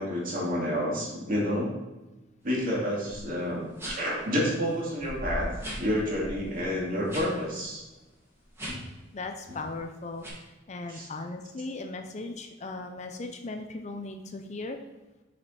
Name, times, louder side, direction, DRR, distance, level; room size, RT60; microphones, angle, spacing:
voice 1, 0.0-1.7 2.4-5.5 5.8-7.8 8.7-8.8 10.9-11.1, equal, 45° right, -4 dB, 2.3 m, -29 dB
sound 1, 3.0-3.2 3.7-4.2 4.7-4.8 5.0-7.3 7.6-7.8 8.5-9.0 9.4-9.7 10.2-10.3, equal, 15° right, 1.8 m, -38 dB
voice 2, 9.1-14.8, left 3 dB, 35° left, 5 dB, 0.5 m, -38 dB
6.9 x 5.0 x 4.3 m, 1.1 s
head